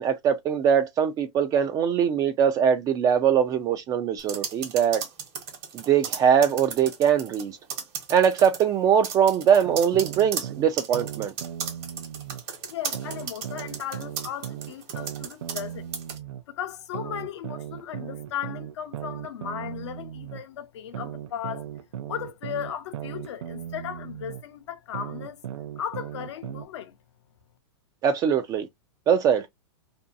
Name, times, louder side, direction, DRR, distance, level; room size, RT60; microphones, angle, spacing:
voice 1, 0.0-5.0 5.7-7.5 8.1-11.3 28.0-28.7 29.1-29.5, right 8 dB, 25° right, 0.3 m, -22 dB
sound 1, 4.2-7.4 7.7-8.6 9.0-15.7 15.9-16.2, right 7 dB, 45° right, 1.1 m, -35 dB
sound 2, 9.6-12.4 12.9-16.4 16.9-20.4 20.9-24.4 24.9-26.7, right 10 dB, 80° right, 0.5 m, -37 dB
voice 2, 12.7-15.9 16.5-21.6 22.1-25.4 25.8-27.0, left 9 dB, 75° left, 0.6 m, -36 dB
2.6 x 2.2 x 2.5 m
hypercardioid pair, 135°, 15 cm